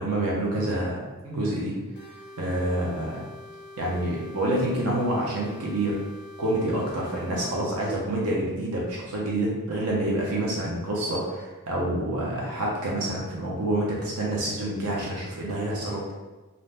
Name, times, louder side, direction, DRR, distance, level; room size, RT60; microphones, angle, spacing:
voice 1, 0.0-1.7 2.4-3.2 3.8-6.0 6.4-16.1, right 1 dB, 90° right, -4 dB, 0.6 m, -27 dB
sound 1, 1.9-7.7, left 2 dB, 50° left, 0.5 m, -45 dB
2.6 x 2.1 x 3.2 m, 1.2 s
head